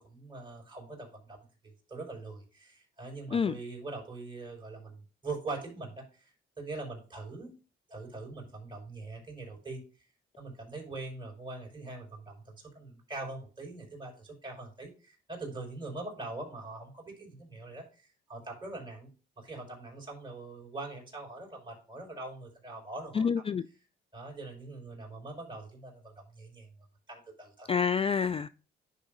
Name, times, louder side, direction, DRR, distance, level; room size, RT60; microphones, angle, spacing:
voice 1, 0.0-1.4 1.6-5.0 5.2-6.3 6.6-7.5 7.9-9.8 10.4-19.1 19.4-23.2 24.1-26.7 27.1-27.7, right 3 dB, 25° right, 5.1 m, -42 dB
voice 2, 23.1-23.7 27.7-28.5, left 6 dB, 30° left, 0.3 m, -27 dB
10.5 x 3.7 x 5.3 m
cardioid pair, 90°, 20 cm